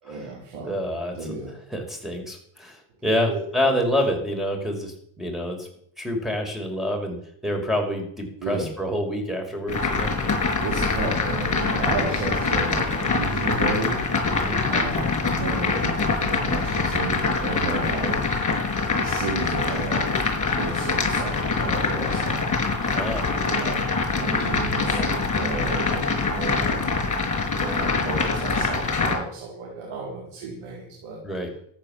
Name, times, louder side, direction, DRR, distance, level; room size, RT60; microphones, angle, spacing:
voice 1, 0.0-0.8 1.1-1.5 3.3-3.4 3.7-3.9 8.4-8.7 10.2-14.1 14.7-18.2 19.0-22.5 23.5-26.9 27.5-31.2, right 3 dB, 85° right, -1 dB, 4.1 m, -32 dB
voice 2, 0.6-1.3 1.7-5.7 6.0-7.2 7.4-10.1 14.3-14.6 22.9-23.3 31.2-31.5, equal, ahead, 3 dB, 5.4 m, -27 dB
sound 1, 9.7-29.2, left 4 dB, 40° left, 4.7 m, -24 dB
13.5 x 9.4 x 7.3 m, 0.66 s
cardioid pair, 80°, 48 cm